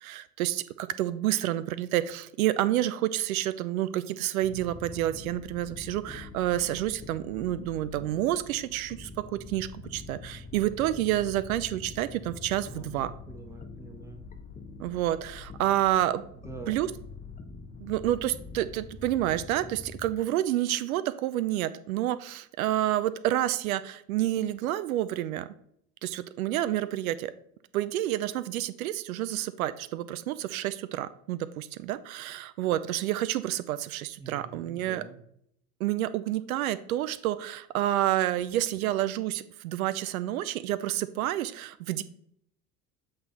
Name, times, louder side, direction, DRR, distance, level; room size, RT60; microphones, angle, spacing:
voice 1, 0.0-13.1 14.8-16.2 16.7-16.9 17.8-25.5 26.0-27.3 27.7-35.0 35.8-42.0, right 13 dB, 65° right, 14 dB, 0.5 m, -29 dB
sound 1, 4.4-20.1, left 4 dB, 15° left, 0.8 m, -45 dB
voice 2, 12.7-14.2 16.4-16.8 34.2-35.2, right 4 dB, 5° right, 3 dB, 1.3 m, -45 dB
8.0 x 3.7 x 4.0 m, 0.70 s
figure-of-eight pair, 65°, 47 cm